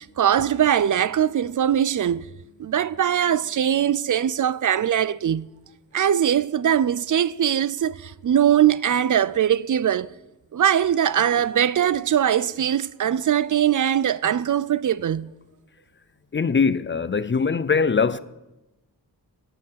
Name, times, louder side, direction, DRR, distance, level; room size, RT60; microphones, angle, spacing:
voice 1, 0.0-2.3 2.6-5.5 5.9-10.1 10.5-15.3, right 9 dB, 55° right, 0.4 m, -21 dB
voice 2, 16.3-18.2, left 5 dB, 30° left, 0.5 m, -21 dB
15.5 x 6.9 x 7.5 m
wide cardioid pair, 85°, 37 cm